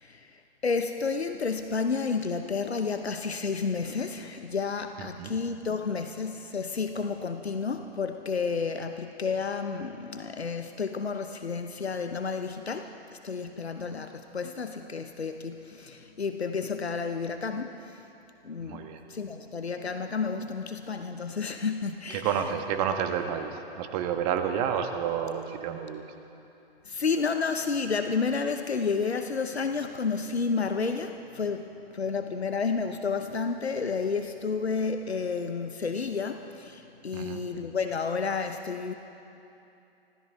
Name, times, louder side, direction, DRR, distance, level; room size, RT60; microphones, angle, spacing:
voice 1, 0.0-18.1 18.4-22.5 26.8-38.9, left 5 dB, 85° left, 7 dB, 0.8 m, -31 dB
voice 2, 5.0-5.3 18.6-19.0 22.1-26.0 37.1-37.4, right 8 dB, 35° right, 6 dB, 1.4 m, -30 dB
25.0 x 16.0 x 3.5 m, 2.8 s
figure-of-eight pair, 110°, 31 cm